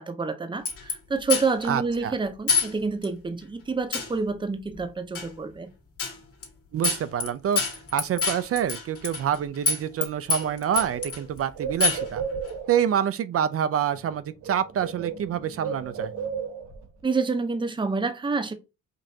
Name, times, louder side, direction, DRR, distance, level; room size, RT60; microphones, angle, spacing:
voice 1, 0.0-5.7 17.0-18.5, right 4 dB, 15° right, 0.7 m, -28 dB
sound 1, 0.7-0.9 1.3-1.7 2.5-2.7 3.0-3.1 3.9-4.1 5.1-5.3 6.0-6.2 6.4-6.5 6.8-7.3 7.6-9.4 9.7-10.0 10.3-11.2 11.8-12.1, left 4 dB, 50° left, 1.6 m, -25 dB
voice 2, 1.6-2.1 6.7-7.6 7.9-12.2 12.7-16.1, right 9 dB, 50° right, 0.4 m, -27 dB
Bird, 10.0-10.1 10.3-12.8 13.9-14.2 14.4-16.8, right 6 dB, 90° right, 1.0 m, -34 dB
5.1 x 2.5 x 2.7 m
cardioid pair, 90°, 30 cm